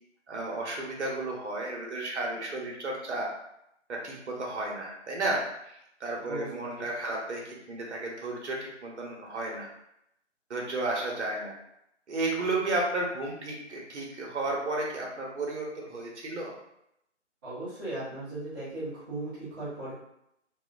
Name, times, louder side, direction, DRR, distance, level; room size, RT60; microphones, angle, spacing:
voice 1, 0.3-3.3 3.9-9.7 10.5-11.5 12.1-16.5, right 2 dB, 70° right, -1 dB, 1.0 m, -33 dB
voice 2, 6.1-6.5 17.4-19.9, right 2 dB, 20° right, -11 dB, 0.9 m, -37 dB
2.8 x 2.2 x 2.5 m, 0.79 s
hypercardioid pair, 160°, 36 cm